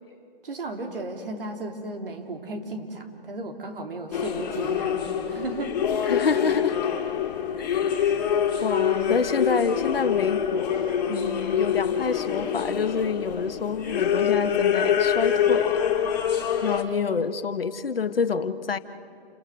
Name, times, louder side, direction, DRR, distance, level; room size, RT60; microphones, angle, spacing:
voice 1, 0.4-5.8, right 2 dB, 65° right, 3 dB, 3.5 m, -35 dB
sound 1, 4.1-16.8, left 8 dB, 40° left, 3.1 m, -25 dB
voice 2, 6.1-6.8 7.6-7.9 8.6-10.8 11.1-15.8 16.6-18.8, left 5 dB, 75° left, 11 dB, 1.3 m, -27 dB
29.0 x 21.0 x 6.5 m, 2.4 s
hypercardioid pair, 145°, 29 cm